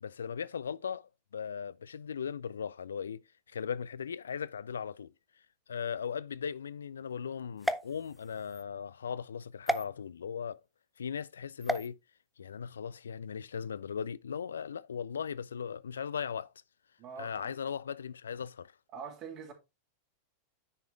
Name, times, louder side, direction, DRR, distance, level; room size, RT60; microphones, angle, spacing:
voice 1, 0.0-5.1 5.7-10.6 11.0-12.0 12.4-16.5 17.2-18.7, left 7 dB, 70° left, 0.3 m, -38 dB
sound 1, 7.6-8.6 9.7-9.8 11.6-11.9, right 1 dB, 5° right, 0.5 m, -33 dB
voice 2, 17.0-17.6 18.9-19.5, right 6 dB, 35° right, 2.4 m, -44 dB
9.7 x 4.9 x 3.2 m
figure-of-eight pair, 90°, 0 cm